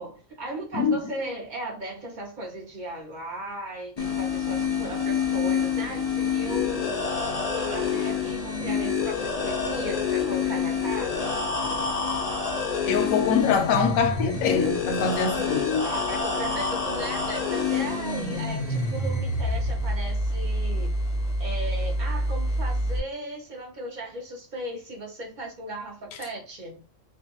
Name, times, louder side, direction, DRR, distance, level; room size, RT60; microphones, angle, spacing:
voice 1, 0.0-7.1 7.5-11.4 15.8-21.0 21.4-26.8, right 1 dB, 50° right, 0.6 m, -36 dB
sound 1, 4.0-23.0, left 4 dB, 45° left, 0.5 m, -27 dB
voice 2, 12.9-15.9, left 6 dB, 80° left, 1.0 m, -24 dB
2.5 x 2.2 x 2.8 m
omnidirectional pair, 1.4 m